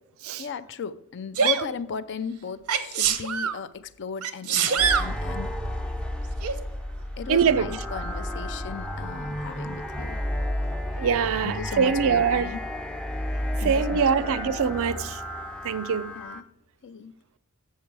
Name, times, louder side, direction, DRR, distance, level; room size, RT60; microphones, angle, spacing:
voice 1, 0.4-5.5 7.2-10.2 11.4-12.6 13.6-14.3 16.2-16.4 16.8-17.1, left 6 dB, 55° left, 0.5 m, -35 dB
Sneeze, 1.3-1.7 2.7-3.6 4.2-5.1 6.4-6.5, right 7 dB, 85° right, 0.8 m, -24 dB
sound 1, 4.8-16.4, left 1 dB, 5° left, 0.5 m, -32 dB
voice 2, 7.3-7.8 11.0-12.5 13.6-15.2 15.6-16.1, right 6 dB, 65° right, 0.4 m, -23 dB
7.3 x 7.3 x 4.6 m
head